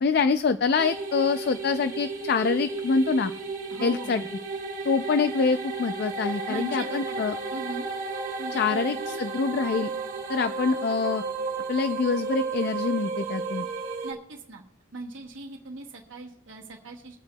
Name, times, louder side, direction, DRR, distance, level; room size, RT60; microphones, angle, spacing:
voice 1, 0.0-3.3 3.8-4.2 4.8-7.4 8.5-9.9 10.3-11.2 11.7-13.7, left 4 dB, 50° left, 10 dB, 0.3 m, -25 dB
sound 1, 0.8-14.1, right 4 dB, 40° right, 1.4 m, -33 dB
voice 2, 3.7-4.3 6.5-7.9 8.4-9.3 14.0-14.6 14.9-17.2, right 2 dB, 75° right, -2 dB, 1.0 m, -39 dB
22.5 x 8.5 x 2.2 m, 0.79 s
head